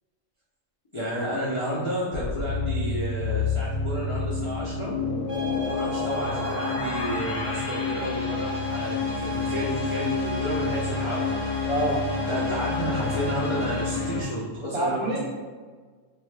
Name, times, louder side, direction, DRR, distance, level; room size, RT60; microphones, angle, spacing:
voice 1, 0.9-4.9 5.6-11.3 12.3-15.2, equal, 45° left, -8 dB, 0.4 m, -31 dB
sound 1, 2.1-14.2, left 4 dB, 75° left, 0.9 m, -29 dB
sound 2, 5.3-14.0, right 2 dB, 80° right, 1.1 m, -37 dB
voice 2, 11.7-12.1 14.7-15.2, right 1 dB, 35° right, -10 dB, 0.8 m, -26 dB
2.7 x 2.1 x 3.1 m, 1.5 s
omnidirectional pair, 1.3 m